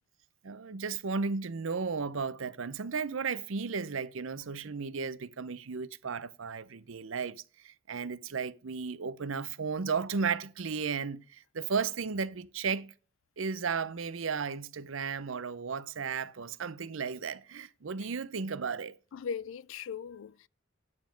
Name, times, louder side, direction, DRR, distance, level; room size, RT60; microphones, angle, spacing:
voice 1, 0.4-12.9 13.4-18.9, right 5 dB, 75° right, 0.6 m, -34 dB
voice 2, 19.1-20.5, left 6 dB, 75° left, 0.4 m, -39 dB
9.7 x 7.2 x 5.1 m
head